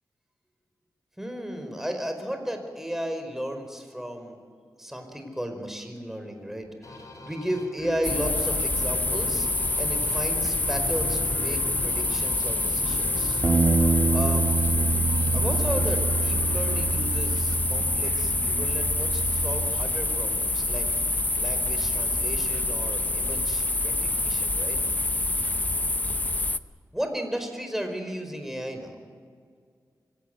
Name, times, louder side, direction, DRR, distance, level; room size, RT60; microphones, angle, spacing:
voice 1, 1.2-4.4 4.8-13.4 14.1-14.6 15.3-20.9 21.3-24.8 26.9-29.0, equal, 5° right, 5 dB, 4.8 m, -34 dB
sound 1, 6.8-18.1, left 2 dB, 55° left, 5.6 m, -41 dB
sound 2, 8.0-26.6, left 2 dB, 25° left, 0.8 m, -26 dB
Bass guitar, 13.4-19.7, right 3 dB, 35° right, 2.6 m, -26 dB
25.5 x 17.0 x 9.3 m, 2.1 s
cardioid pair, 65°, 7 cm